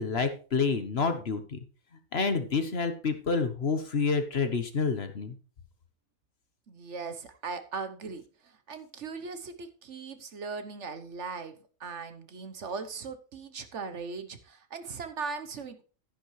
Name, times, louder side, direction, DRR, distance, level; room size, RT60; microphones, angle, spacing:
voice 1, 0.0-1.6 2.1-5.3, left 4 dB, 50° left, 8 dB, 1.3 m, -28 dB
voice 2, 6.7-15.8, right 4 dB, 55° right, 10 dB, 1.2 m, -39 dB
11.0 x 10.0 x 3.2 m, 0.37 s
omnidirectional pair, 1.5 m